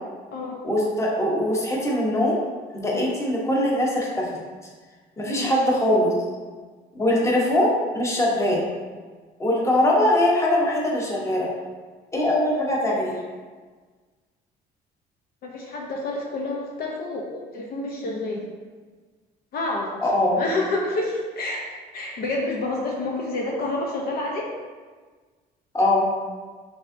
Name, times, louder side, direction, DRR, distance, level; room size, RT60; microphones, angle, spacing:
voice 1, 0.6-2.4 2.7-4.3 5.2-6.1 6.9-8.7 9.4-11.5 12.1-13.2 20.0-20.4 25.7-26.1, left 1 dB, 15° left, -4 dB, 1.0 m, -22 dB
voice 2, 15.4-18.4 19.5-19.9 20.4-21.6 21.9-24.5, left 2 dB, 60° left, -1 dB, 0.7 m, -28 dB
5.4 x 3.4 x 2.6 m, 1.4 s
cardioid pair, 110°, 17 cm